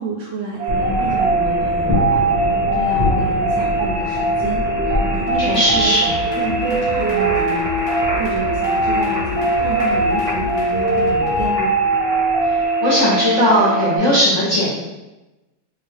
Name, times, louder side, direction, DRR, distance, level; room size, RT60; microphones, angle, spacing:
voice 1, 0.0-11.7, right 4 dB, 70° right, -2 dB, 1.1 m, -29 dB
sound 1, 0.6-14.0, right 2 dB, 35° right, 1.0 m, -20 dB
sound 2, 0.7-12.7, left 2 dB, 5° right, 1.0 m, -28 dB
sound 3, 5.3-11.5, left 1 dB, 80° left, 1.5 m, -32 dB
voice 2, 5.4-6.1 12.8-14.8, left 1 dB, 50° left, -8 dB, 0.9 m, -17 dB
3.4 x 2.7 x 3.4 m, 1.0 s
omnidirectional pair, 2.3 m